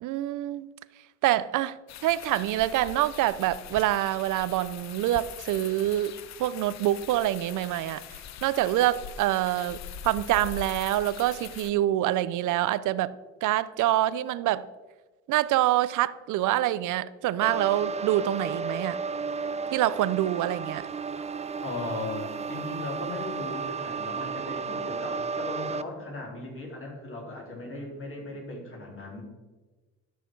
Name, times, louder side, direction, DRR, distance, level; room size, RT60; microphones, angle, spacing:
voice 1, 0.0-0.7 1.2-1.8 2.0-6.1 6.4-8.0 8.4-13.1 13.4-14.6 15.3-19.0 19.7-20.8, right 14 dB, 80° right, 16 dB, 0.5 m, -26 dB
sound 1, 1.9-11.7, left 9 dB, 60° left, 0.6 m, -42 dB
sound 2, 17.4-25.8, right 5 dB, 20° right, 0.5 m, -33 dB
voice 2, 21.6-29.2, left 2 dB, 45° left, -1 dB, 3.6 m, -37 dB
12.5 x 6.5 x 4.6 m, 1.3 s
cardioid pair, 90°, 30 cm